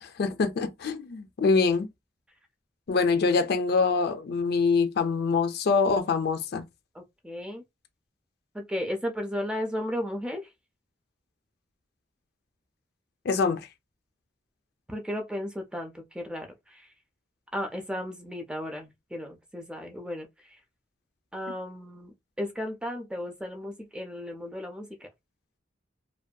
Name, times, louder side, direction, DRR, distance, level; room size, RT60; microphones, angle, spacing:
voice 1, 0.0-1.9 2.9-6.7 13.2-13.6, left 4 dB, 60° left, 0.4 m, -24 dB
voice 2, 6.9-7.6 8.5-10.5 14.9-16.9 17.5-20.3 21.3-25.1, equal, 5° right, 0.4 m, -35 dB
2.6 x 2.2 x 2.2 m
head